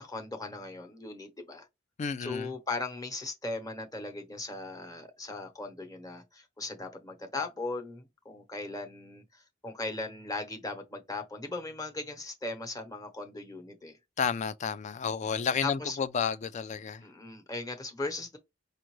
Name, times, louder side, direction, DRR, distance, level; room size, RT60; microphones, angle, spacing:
voice 1, 0.0-1.7 2.2-14.0 15.6-16.0 17.0-18.4, left 3 dB, 20° left, 0.9 m, -38 dB
voice 2, 2.0-2.5 14.2-17.0, left 6 dB, 40° left, 0.3 m, -31 dB
5.2 x 2.4 x 3.0 m
head